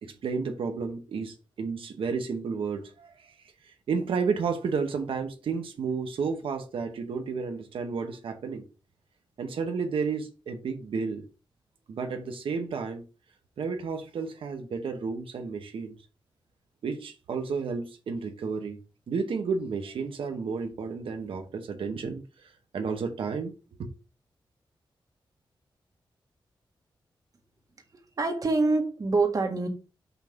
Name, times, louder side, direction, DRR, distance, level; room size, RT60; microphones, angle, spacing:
voice 1, 0.0-8.6 9.4-11.2 11.9-13.0 13.6-16.0 16.8-18.8 19.1-23.5 23.8-23.9, right 5 dB, 85° right, 1.0 m, -32 dB
voice 2, 27.9-29.7, right 3 dB, 45° right, 1.6 m, -26 dB
5.7 x 3.6 x 5.7 m
wide cardioid pair, 120°, 9 cm